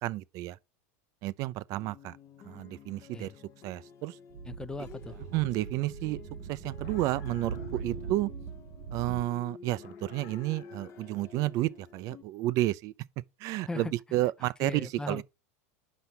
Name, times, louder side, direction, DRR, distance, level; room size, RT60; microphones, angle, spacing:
voice 1, 0.0-0.6 1.2-2.1 2.4-3.3 3.6-4.2 5.3-6.2 6.5-8.3 8.9-12.9 13.4-15.2, right 16 dB, 45° right, 0.5 m, -31 dB
sound 1, 1.8-12.2, left 6 dB, 35° left, 0.8 m, -50 dB
Speech / Wind, 4.3-9.2, right 7 dB, 70° right, 1.0 m, -40 dB
voice 2, 4.5-5.2 13.7-13.9 14.4-15.2, left 2 dB, 10° left, 0.5 m, -38 dB
sound 2, 6.8-7.9 9.8-11.2, left 12 dB, 60° left, 1.0 m, -56 dB
6.0 x 5.5 x 6.9 m
supercardioid pair, 125°, 8 cm